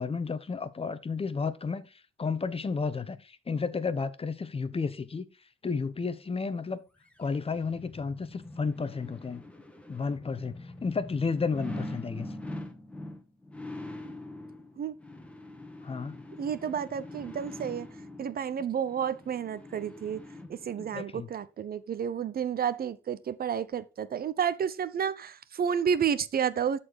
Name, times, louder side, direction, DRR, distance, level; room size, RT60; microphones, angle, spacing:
voice 1, 0.0-5.3 5.6-6.8 7.2-9.4 9.9-12.3 15.8-16.2 20.8-21.3, left 4 dB, 30° left, 1.0 m, -32 dB
sound 1, 7.1-21.0 21.4-21.5, left 1 dB, 5° left, 1.7 m, -43 dB
voice 2, 16.4-17.9 18.2-20.2 20.5-26.8, right 8 dB, 50° right, 0.7 m, -31 dB
12.5 x 4.4 x 4.7 m
cardioid pair, 90°, 20 cm